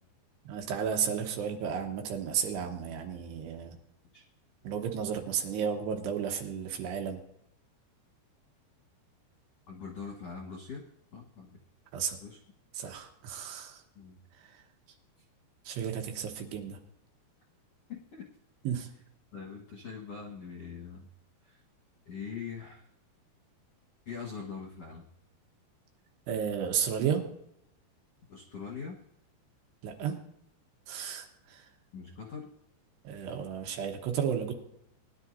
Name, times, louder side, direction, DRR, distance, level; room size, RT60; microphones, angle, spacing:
voice 1, 0.5-3.8 4.6-7.2 11.9-12.2 12.7-13.8 14.3-14.6 15.6-16.8 18.6-18.9 26.3-27.3 29.8-30.2 30.9-31.7 33.0-34.5, right 7 dB, 75° right, 3 dB, 3.1 m, -33 dB
voice 2, 9.7-10.8 11.1-11.6 12.2-12.4 13.9-14.2 17.9-18.2 19.3-21.1 21.4-21.6 22.0-22.9 24.0-25.0 28.3-29.0 31.9-32.5, left 6 dB, 65° left, -3 dB, 1.7 m, -42 dB
20.0 x 11.5 x 2.7 m, 0.76 s
omnidirectional pair, 5.3 m